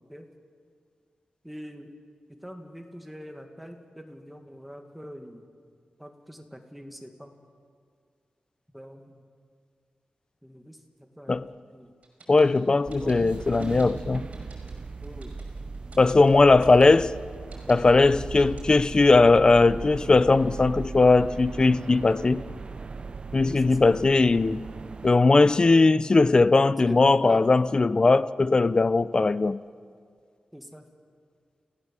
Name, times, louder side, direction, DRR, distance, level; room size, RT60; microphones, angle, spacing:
voice 1, 1.4-1.9 2.3-5.4 6.0-7.3 8.7-9.2 10.4-11.4 11.7-11.9 12.6-13.3 15.0-15.4 23.4-23.9 26.9-27.5 30.5-30.9, equal, ahead, 1.8 m, -42 dB
sound 1, 12.0-18.9, right 3 dB, 50° right, 5.8 m, -51 dB
voice 2, 12.3-14.3 16.0-17.1 17.7-22.4 23.3-24.7 25.0-29.6, left 3 dB, 30° left, 0.5 m, -19 dB
sound 2, 12.8-25.1, right 4 dB, 35° right, 0.5 m, -38 dB
30.0 x 16.5 x 7.4 m
wide cardioid pair, 170°, 3 cm